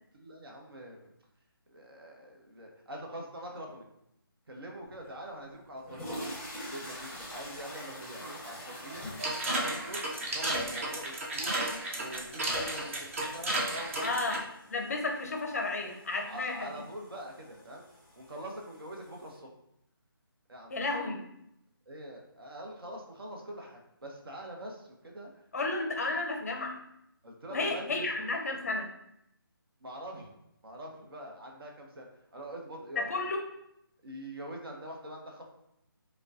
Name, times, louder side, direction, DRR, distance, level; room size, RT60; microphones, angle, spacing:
voice 1, 0.1-1.0 1.7-3.9 4.5-6.3 6.6-9.1 9.5-11.6 11.9-14.4 16.3-17.8 18.2-19.5 20.5-20.7 21.9-25.3 27.2-28.1 29.8-30.3 30.6-32.1 32.3-33.3 34.0-35.4, right 1 dB, 75° right, 0 dB, 0.9 m, -44 dB
sound 1, 5.0-5.1 5.7-19.4, equal, 5° left, 0.9 m, -46 dB
sound 2, 9.2-14.4, right 1 dB, 35° right, 0.6 m, -33 dB
voice 2, 14.0-14.4 14.7-16.7 20.7-21.2 25.5-26.8 27.5-28.9 33.0-33.4, left 3 dB, 40° left, 3 dB, 0.5 m, -32 dB
5.0 x 2.2 x 2.5 m, 0.79 s
figure-of-eight pair, 165°, 12 cm